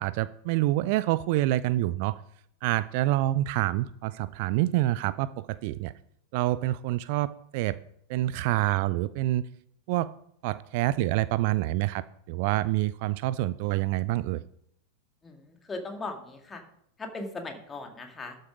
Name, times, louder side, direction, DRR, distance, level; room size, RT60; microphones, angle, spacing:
voice 1, 0.0-2.2 2.6-5.9 6.3-7.8 8.1-9.4 9.9-10.1 10.4-14.4, right 16 dB, 45° right, 17 dB, 0.3 m, -27 dB
voice 2, 15.2-16.6 17.0-18.4, left 3 dB, 15° left, 4 dB, 1.9 m, -38 dB
12.5 x 6.6 x 5.0 m, 0.71 s
figure-of-eight pair, 90°, 0 cm